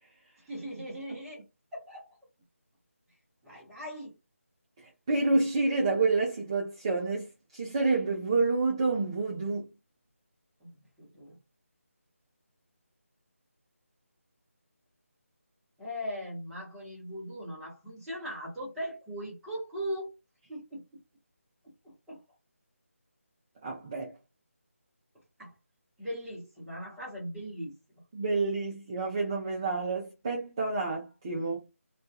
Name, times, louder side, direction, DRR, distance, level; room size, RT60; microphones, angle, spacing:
voice 1, 0.5-1.4 1.7-2.1 3.4-4.2 10.6-10.7 11.0-11.4 15.8-20.1 20.5-21.0 21.6-22.2 25.4-25.5 26.0-27.7, equal, 5° right, 0.8 m, -39 dB
voice 2, 5.1-9.7 23.6-24.1 28.1-31.6, right 3 dB, 20° right, 0.3 m, -28 dB
2.2 x 2.2 x 2.7 m
figure-of-eight pair, 160°, 8 cm